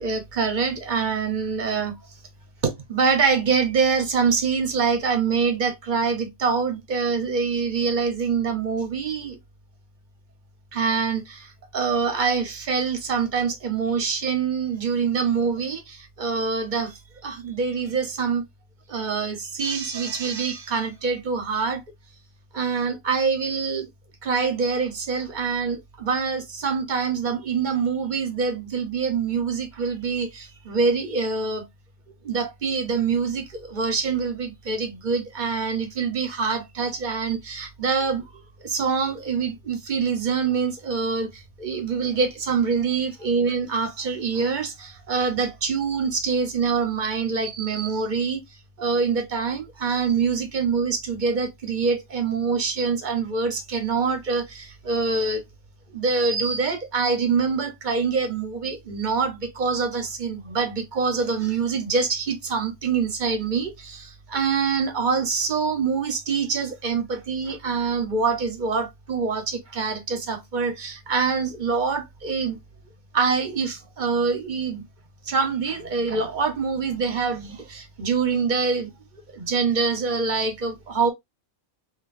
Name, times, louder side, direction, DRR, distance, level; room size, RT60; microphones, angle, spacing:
voice 1, 0.0-1.9 2.6-9.4 10.7-18.4 18.9-21.8 22.5-23.9 24.2-31.6 32.2-48.4 48.8-55.4 55.9-72.6 73.1-74.8 75.2-78.9 79.3-81.1, right 5 dB, 35° right, 1.1 m, -25 dB
5.7 x 2.7 x 2.6 m
omnidirectional pair, 1.5 m